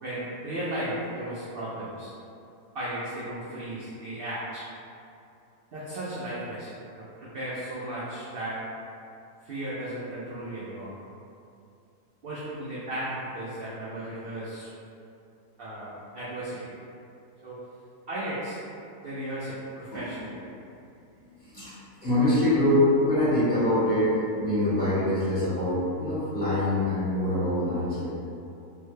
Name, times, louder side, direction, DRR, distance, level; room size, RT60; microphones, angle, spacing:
voice 1, 0.0-2.1 2.7-4.7 5.7-8.6 9.4-11.0 12.2-14.7 15.6-16.7 17.4-17.6 18.1-18.6 19.0-20.4, right 1 dB, 80° right, -9 dB, 0.5 m, -35 dB
voice 2, 21.2-21.7 22.0-28.1, left 1 dB, 40° left, -12 dB, 1.0 m, -24 dB
3.3 x 2.1 x 3.1 m, 2.6 s
omnidirectional pair, 1.7 m